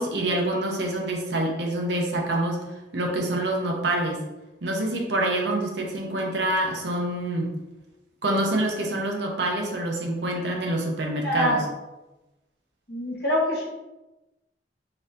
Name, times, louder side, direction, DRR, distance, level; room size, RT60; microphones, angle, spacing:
voice 1, 0.0-2.6 2.9-4.2 4.6-7.5 8.2-11.6, right 1 dB, 65° right, 0 dB, 0.8 m, -26 dB
voice 2, 11.2-11.6 12.9-13.6, equal, 60° left, -4 dB, 1.4 m, -24 dB
3.9 x 3.7 x 2.7 m, 1.0 s
head